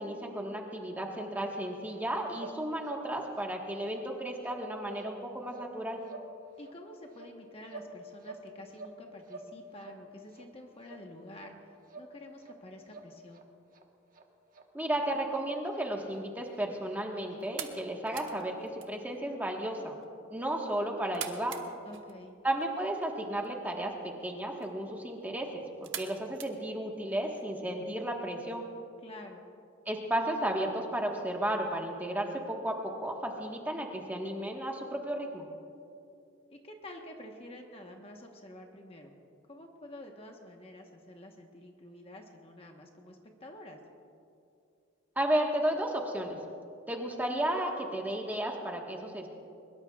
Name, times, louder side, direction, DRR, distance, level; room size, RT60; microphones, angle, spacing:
voice 1, 0.0-6.0 14.7-19.9 20.3-21.5 22.4-28.6 29.8-35.4 45.1-46.4 46.9-49.3, right 1 dB, 10° right, 0 dB, 1.4 m, -33 dB
sound 1, 1.9-2.0 2.3-2.6 2.8-3.1 3.3-3.5 3.9-4.1 4.4-4.7 4.9-5.2 5.5-5.7 6.0-6.3 6.6-6.8 7.1-7.9 8.2-9.0 9.2-9.5 9.8-10.0 10.3-10.4 10.8-11.0 11.3-11.5 11.9-12.1 12.4-12.6 12.9-13.4 13.7-13.8 14.1-14.2 14.5-14.6 14.9-15.0 15.3-15.4 15.7-15.8 16.1-16.2 16.5-16.6 16.9-17.0 17.3-17.4 17.7-17.8, right 3 dB, 40° right, 1.2 m, -48 dB
voice 2, 6.6-11.7 12.0-13.4 21.8-22.3 29.0-29.4 36.5-39.1 39.5-43.8, left 1 dB, 30° left, 2 dB, 1.1 m, -49 dB
sound 2, 16.0-27.4, right 9 dB, 65° right, 1.1 m, -48 dB
23.0 x 21.5 x 2.4 m, 2.6 s
head